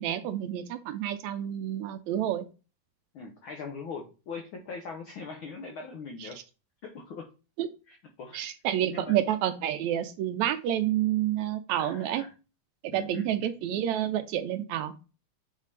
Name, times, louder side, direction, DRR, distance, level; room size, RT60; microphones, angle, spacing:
voice 1, 0.0-2.5 6.2-6.3 7.6-7.7 8.3-12.2 12.8-14.9, right 11 dB, 80° right, 10 dB, 1.9 m, -29 dB
voice 2, 3.1-6.4 6.8-7.3 7.9-8.4 8.9-9.2 11.7-12.3 12.9-13.2, left 4 dB, 75° left, 2 dB, 1.1 m, -41 dB
8.3 x 3.8 x 3.2 m, 0.32 s
omnidirectional pair, 3.4 m